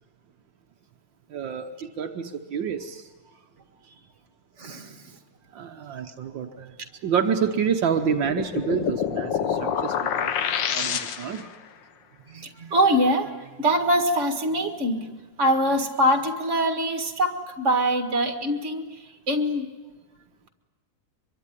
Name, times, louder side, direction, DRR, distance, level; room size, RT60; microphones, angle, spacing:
voice 1, 1.3-3.1 5.5-6.7 7.0-10.3 10.7-11.5, right 7 dB, 75° right, 5 dB, 1.7 m, -28 dB
voice 2, 4.6-5.0 12.3-15.1 15.4-18.8 19.3-19.7, equal, 40° right, 6 dB, 2.2 m, -23 dB
sound 1, 7.9-11.5, left 8 dB, 70° left, 1.7 m, -27 dB
24.0 x 23.5 x 9.9 m, 1.3 s
omnidirectional pair, 2.1 m